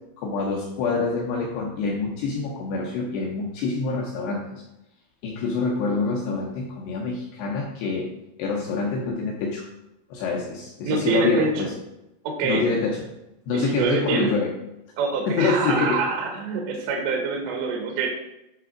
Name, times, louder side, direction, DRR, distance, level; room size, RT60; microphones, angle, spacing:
voice 1, 0.2-4.6 5.2-8.1 8.4-9.7 10.1-11.7 12.4-13.0 13.5-14.5 15.3-16.0, left 4 dB, 80° left, -2 dB, 2.4 m, -26 dB
voice 2, 10.9-11.7 12.2-12.6 13.5-14.3 15.0-18.1, right 4 dB, 75° right, 1 dB, 2.8 m, -25 dB
9.1 x 3.4 x 4.9 m, 0.90 s
omnidirectional pair, 5.8 m